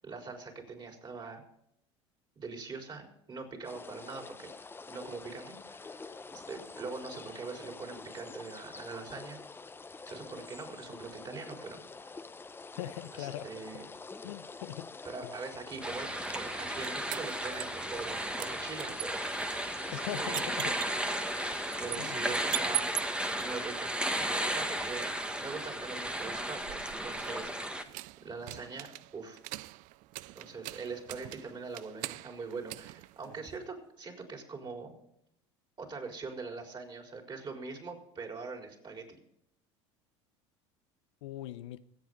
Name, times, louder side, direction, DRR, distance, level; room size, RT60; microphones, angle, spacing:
voice 1, 0.0-1.4 2.4-4.5 4.9-9.4 10.0-12.1 13.1-13.9 15.0-19.3 19.9-20.6 21.8-24.0 24.4-25.1 25.4-27.9 28.2-29.4 30.3-34.9 35.8-39.2, right 4 dB, 30° right, 4.3 m, -43 dB
sound 1, 3.6-22.0, left 4 dB, 15° left, 0.6 m, -47 dB
voice 2, 12.8-13.5 14.2-14.9 19.9-20.7 21.9-22.2 41.2-41.8, left 14 dB, 75° left, 0.7 m, -40 dB
sound 2, 15.8-27.8, right 1 dB, 5° right, 1.3 m, -34 dB
sound 3, 16.2-18.1 18.4-23.4 26.2-33.7, right 20 dB, 55° right, 0.4 m, -42 dB
24.5 x 8.4 x 3.9 m
hypercardioid pair, 85°, 15 cm